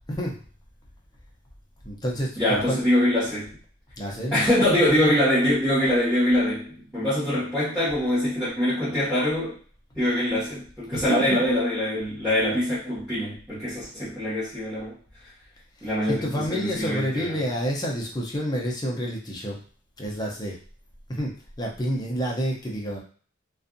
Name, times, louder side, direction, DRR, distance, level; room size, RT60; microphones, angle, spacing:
voice 1, 1.8-2.8 4.0-4.4 10.9-11.4 15.8-19.6 20.0-20.6 21.1-21.3 21.6-23.0, equal, 20° left, -2 dB, 0.5 m, -29 dB
voice 2, 2.4-3.5 4.3-9.5 9.9-14.9 15.8-17.4, left 1 dB, 5° right, -14 dB, 1.2 m, -24 dB
2.5 x 2.3 x 2.5 m, 0.44 s
head